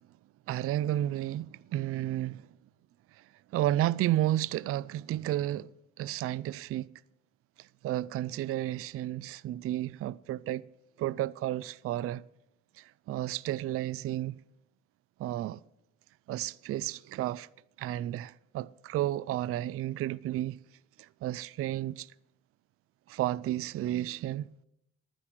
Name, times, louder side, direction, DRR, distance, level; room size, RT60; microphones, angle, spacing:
voice 1, 0.5-2.5 3.1-3.2 3.5-5.7 6.0-6.9 7.6-10.6 11.0-12.2 12.8-14.4 15.2-15.6 16.3-17.5 17.8-20.6 21.0-22.1 23.1-24.5, right 13 dB, 50° right, 0.4 m, -32 dB
11.5 x 10.0 x 6.1 m
cardioid pair, 110°, 29 cm